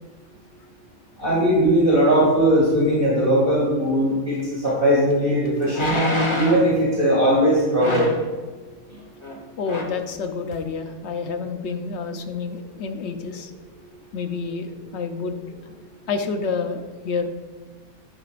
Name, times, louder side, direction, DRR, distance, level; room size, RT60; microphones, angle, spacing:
voice 1, 1.2-6.0 6.4-8.1, right 1 dB, 40° right, -6 dB, 2.6 m, -19 dB
sound 1, 4.7-4.8 5.7-6.7 7.8-8.3 9.2-9.4 9.7-10.0 10.5-10.6, left 1 dB, 20° left, 1.1 m, -25 dB
voice 2, 9.6-13.5 14.1-15.4 16.1-17.3, left 5 dB, 55° left, 7 dB, 0.9 m, -28 dB
10.5 x 10.5 x 2.5 m, 1.3 s
omnidirectional pair, 1.5 m